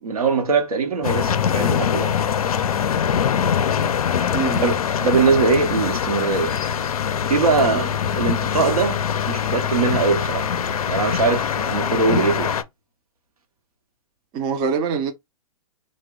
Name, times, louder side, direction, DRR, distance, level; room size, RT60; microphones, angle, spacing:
voice 1, 0.0-2.2 2.7-2.9 4.6-4.7 5.0-6.6 7.3-10.6 10.9-12.6, right 4 dB, 80° right, 0.9 m, -21 dB
sound 1, 1.0-12.6, left 8 dB, 80° left, 0.4 m, -23 dB
voice 2, 4.3-4.8 7.7-7.9 14.3-15.1, right 5 dB, 25° right, 0.4 m, -24 dB
2.9 x 2.1 x 3.4 m
hypercardioid pair, 115°, 19 cm